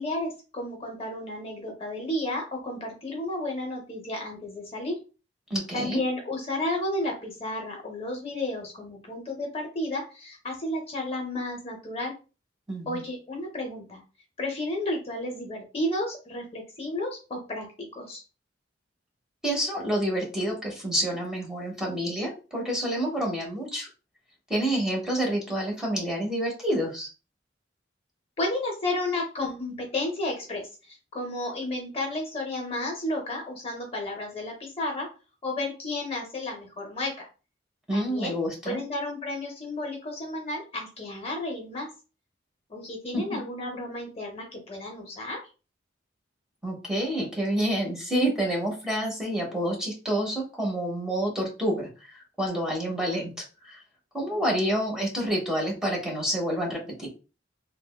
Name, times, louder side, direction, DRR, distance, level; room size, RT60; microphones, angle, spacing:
voice 1, 0.0-5.0 5.7-12.1 12.9-14.0 14.4-17.7 18.0-18.2 28.4-35.1 35.4-37.2 37.9-38.3 38.6-41.9 42.7-45.4, left 1 dB, 30° left, 1 dB, 0.6 m, -32 dB
voice 2, 5.5-6.0 12.7-13.0 19.4-23.9 24.5-27.1 37.9-38.8 43.1-43.4 46.6-53.8 54.1-57.1, right 1 dB, 5° right, -2 dB, 0.8 m, -28 dB
3.3 x 2.1 x 2.2 m, 0.33 s
head